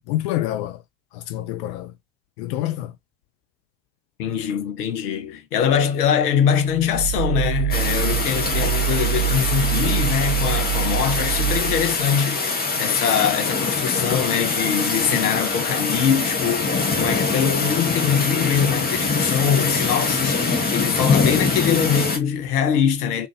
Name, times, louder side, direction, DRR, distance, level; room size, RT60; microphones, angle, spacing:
voice 1, 0.1-0.8 1.1-1.9 2.4-2.9 13.0-13.1, left 14 dB, 45° left, 0.5 m, -27 dB
voice 2, 4.2-23.3, left 8 dB, 65° left, 1.0 m, -23 dB
sound 1, 6.7-12.1, right 12 dB, 70° right, 0.6 m, -25 dB
sound 2, 7.7-22.2, left 4 dB, 20° left, 1.1 m, -23 dB
3.9 x 2.8 x 3.2 m
figure-of-eight pair, 75°, 50 cm